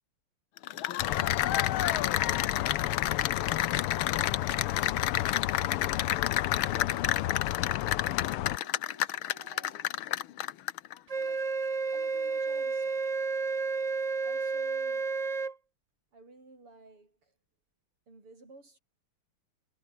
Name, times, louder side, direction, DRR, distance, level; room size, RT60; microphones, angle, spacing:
Cheering / Applause, 0.6-10.9, left 12 dB, 75° left, 1.7 m, -30 dB
voice 1, 0.7-3.0 3.5-5.6 6.4-7.6 8.3-10.0 11.1-11.5 11.9-13.1 14.2-15.1 16.1-17.4 18.1-18.8, right 3 dB, 80° right, 8.2 m, -55 dB
sound 1, 1.0-8.6, left 16 dB, 90° left, 1.7 m, -32 dB
Wind instrument woodwind instrument, 11.1-15.5, right 4 dB, 35° right, 0.5 m, -31 dB
omnidirectional pair, 2.4 m